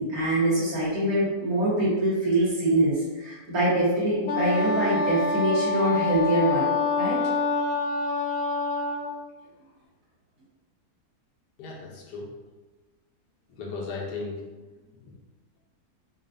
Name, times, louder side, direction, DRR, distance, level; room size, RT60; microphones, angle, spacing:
voice 1, 0.0-6.7 7.0-7.2, right 1 dB, 60° right, -8 dB, 2.1 m, -24 dB
Wind instrument woodwind instrument, 4.3-9.1, left 3 dB, 65° left, 0.9 m, -26 dB
voice 2, 11.6-12.3 13.6-14.4 15.0-15.1, left 4 dB, 85° left, -1 dB, 1.5 m, -36 dB
5.3 x 2.5 x 3.8 m, 1.2 s
omnidirectional pair, 1.8 m